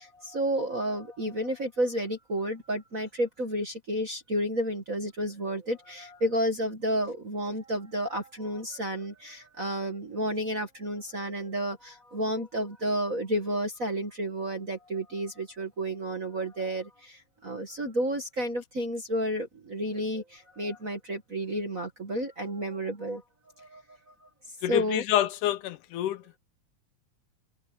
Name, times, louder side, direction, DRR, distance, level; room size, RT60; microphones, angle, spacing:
voice 1, 0.0-23.2 23.6-24.3 24.7-25.0, equal, 35° right, 1.6 m, -31 dB
voice 2, 24.6-26.4, left 13 dB, 80° left, 2.3 m, -27 dB
omnidirectional pair, 3.7 m